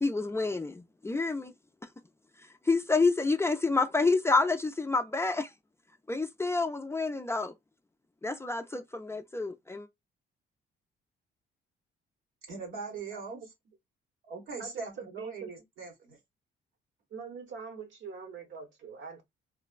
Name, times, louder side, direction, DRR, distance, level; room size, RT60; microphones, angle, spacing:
voice 1, 0.0-1.5 2.7-5.5 6.1-7.5 8.2-9.9, left 3 dB, 15° left, 0.3 m, -28 dB
voice 2, 12.5-13.4 14.3-16.2, right 4 dB, 85° right, 1.4 m, -41 dB
voice 3, 13.1-13.5 14.6-15.5 17.1-19.2, right 5 dB, 70° right, 1.0 m, -43 dB
3.2 x 2.1 x 2.3 m
cardioid pair, 90°, 20 cm